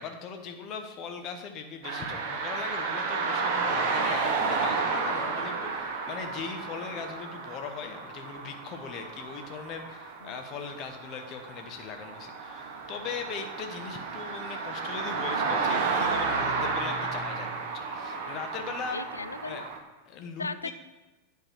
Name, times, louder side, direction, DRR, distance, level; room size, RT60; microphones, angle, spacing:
voice 1, 0.0-19.0 19.4-19.6 20.1-20.7, left 5 dB, 35° left, 5 dB, 0.9 m, -39 dB
sound 1, 1.8-19.8, right 4 dB, 50° right, 0.9 m, -32 dB
voice 2, 18.9-19.7 20.4-20.7, left 4 dB, 80° left, 12 dB, 0.3 m, -37 dB
8.8 x 4.6 x 4.6 m, 1.2 s
figure-of-eight pair, 90°, 0 cm